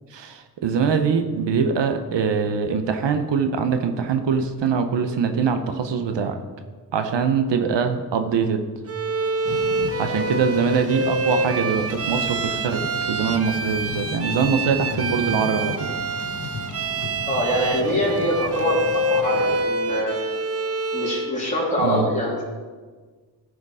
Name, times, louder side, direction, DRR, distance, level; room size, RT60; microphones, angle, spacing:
voice 1, 0.1-6.4 6.9-8.6 10.0-15.9 21.8-22.1, right 6 dB, 85° right, 7 dB, 0.9 m, -23 dB
Bowed string instrument, 8.9-21.4, right 2 dB, 35° right, 0.7 m, -26 dB
Thunder / Rain, 9.4-19.6, left 4 dB, 45° left, 1.1 m, -36 dB
voice 2, 17.3-20.2 20.9-22.4, equal, 15° left, -6 dB, 2.9 m, -24 dB
13.5 x 5.0 x 4.9 m, 1.4 s
cardioid pair, 80°, 42 cm